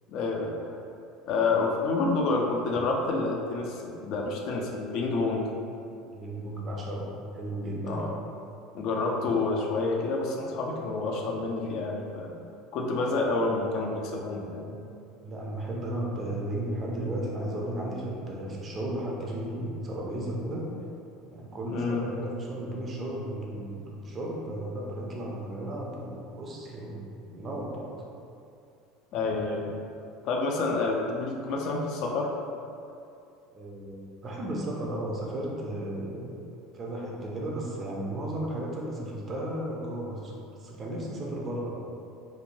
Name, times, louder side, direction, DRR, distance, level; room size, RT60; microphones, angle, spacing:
voice 1, 0.1-0.7 1.3-5.4 7.8-8.1 8.7-12.3 12.7-14.8 21.7-22.1 29.1-29.8 30.2-32.3, left 3 dB, 55° left, 0 dB, 0.4 m, -28 dB
voice 2, 6.1-8.1 15.2-20.6 21.2-28.0 33.5-36.3 36.7-40.3 40.6-41.8, right 1 dB, 30° right, -2 dB, 0.5 m, -34 dB
3.1 x 2.1 x 2.6 m, 2.6 s
supercardioid pair, 125°, 0 cm